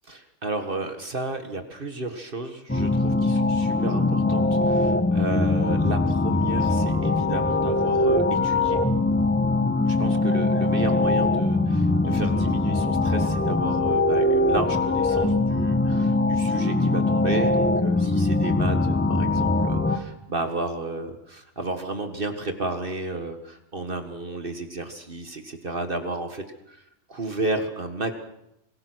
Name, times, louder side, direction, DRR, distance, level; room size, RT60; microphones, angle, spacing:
voice 1, 0.1-8.8 9.9-26.8 27.1-28.1, right 2 dB, 45° right, 6 dB, 1.8 m, -32 dB
sound 1, 2.7-20.0, left 2 dB, 10° left, 1.5 m, -22 dB
26.0 x 19.0 x 6.2 m, 0.80 s
omnidirectional pair, 1.3 m